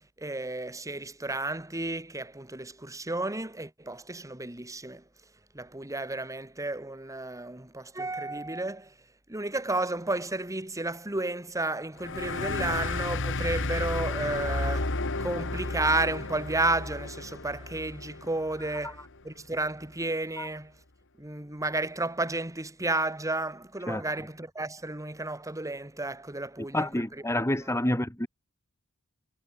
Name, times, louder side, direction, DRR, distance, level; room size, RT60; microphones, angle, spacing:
voice 1, 0.0-5.0 5.5-8.9 9.3-20.8 21.2-26.9 27.5-27.6, right 2 dB, 15° right, 2.3 m, -32 dB
sound 1, 12.0-19.1, left 3 dB, 60° left, 2.3 m, -33 dB
voice 2, 23.9-24.3 26.7-28.3, left 1 dB, 10° left, 2.4 m, -29 dB
head